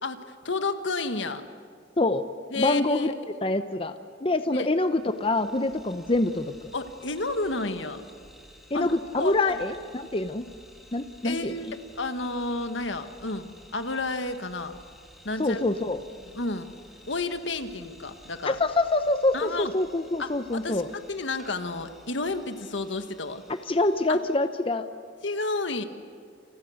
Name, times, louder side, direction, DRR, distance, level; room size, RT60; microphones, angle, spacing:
voice 1, 0.0-1.4 2.5-3.1 4.5-4.7 6.7-8.0 8.7-8.9 9.2-9.3 11.2-14.7 15.2-15.6 16.3-16.7 17.1-18.6 19.3-19.7 20.2-23.4 24.1-24.2 25.2-25.8, left 3 dB, 80° left, 8 dB, 1.7 m, -31 dB
voice 2, 2.6-3.1 3.4-3.9 4.2-6.7 8.7-10.5 10.9-11.6 15.4-16.0 18.4-20.9 23.7-24.9, left 2 dB, 30° left, 9 dB, 0.8 m, -25 dB
sound 1, 4.8-24.5, equal, ahead, 3.2 m, -53 dB
29.5 x 29.0 x 6.5 m, 2.2 s
head